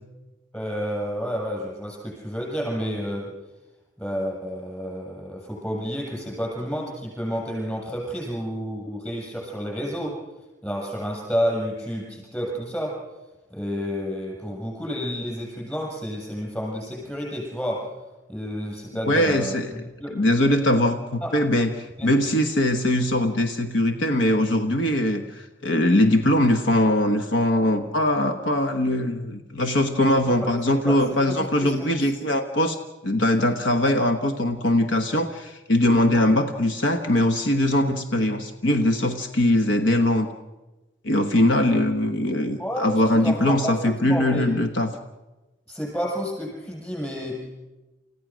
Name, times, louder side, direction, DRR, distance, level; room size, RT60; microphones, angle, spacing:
voice 1, 0.5-3.3 4.0-10.2 10.6-13.0 13.5-17.9 18.3-20.2 21.2-21.3 22.0-22.1 30.1-32.1 42.6-44.5 45.7-47.5, equal, 10° left, -2 dB, 7.8 m, -30 dB
voice 2, 19.0-19.7 20.1-32.8 33.0-40.3 41.0-44.9, left 1 dB, 70° left, 6 dB, 1.3 m, -21 dB
29.5 x 15.5 x 6.3 m, 1.1 s
head